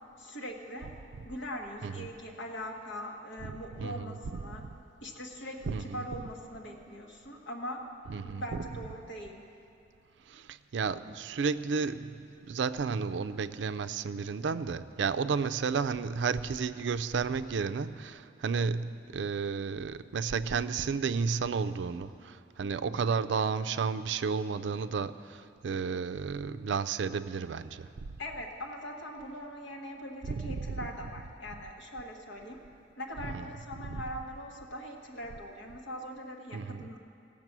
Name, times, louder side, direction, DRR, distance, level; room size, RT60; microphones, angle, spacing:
voice 1, 0.2-0.9 1.2-4.6 5.0-7.8 8.2-9.4 28.2-32.6 33.0-37.0, equal, 80° left, 1 dB, 1.6 m, -41 dB
voice 2, 3.4-4.2 4.4-4.7 5.7-6.0 6.7-6.8 8.1-8.4 10.3-27.9 30.3-30.8 33.3-33.5 33.9-34.0 36.5-36.9, right 5 dB, 70° right, 12 dB, 0.4 m, -32 dB
18.0 x 7.3 x 6.0 m, 2.6 s
head